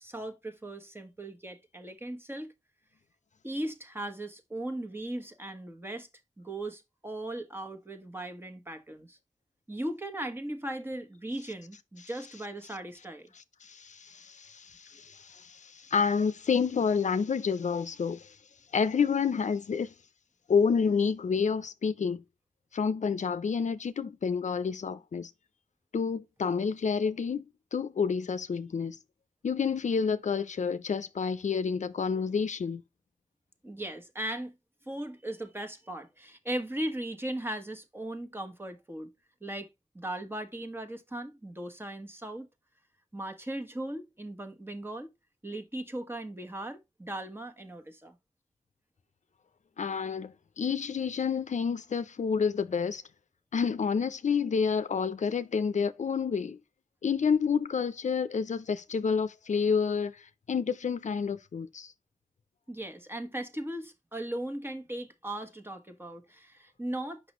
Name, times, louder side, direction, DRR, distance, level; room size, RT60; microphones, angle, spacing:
voice 1, 0.0-2.5 3.4-6.1 6.4-9.2 9.7-13.3 33.6-34.5 34.9-39.1 39.4-39.7 39.9-42.5 43.1-45.1 45.4-48.2 62.7-67.2, right 1 dB, 15° right, 1.3 m, -38 dB
voice 2, 13.6-18.3 18.7-19.9 20.5-22.2 22.7-25.3 25.9-27.5 27.7-29.0 29.4-32.8 49.8-53.0 53.5-56.6 57.0-60.2 60.5-61.9, left 6 dB, 70° left, 0.5 m, -29 dB
5.9 x 5.7 x 3.0 m
cardioid pair, 45°, 13 cm